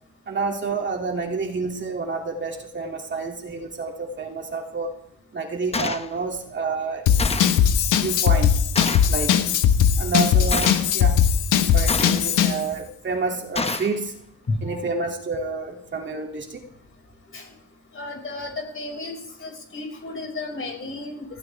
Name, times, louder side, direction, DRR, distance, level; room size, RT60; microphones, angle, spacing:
voice 1, 0.3-4.9 5.3-7.1 8.0-8.5 9.1-9.5 10.0-11.2 11.7-14.2 14.6-16.6, right 4 dB, 40° right, 1 dB, 2.8 m, -29 dB
Gunshot gunfire, 5.7-6.1 7.2-7.6 8.8-9.1 10.5-10.9 11.9-12.4 13.6-14.0, left 3 dB, 20° left, 1.1 m, -27 dB
Drum kit / Drum, 7.1-12.6, left 8 dB, 85° left, 1.5 m, -19 dB
voice 2, 17.9-21.3, left 2 dB, 45° left, 2 dB, 5.8 m, -34 dB
19.0 x 16.0 x 3.5 m, 0.71 s
cardioid pair, 90°, 30 cm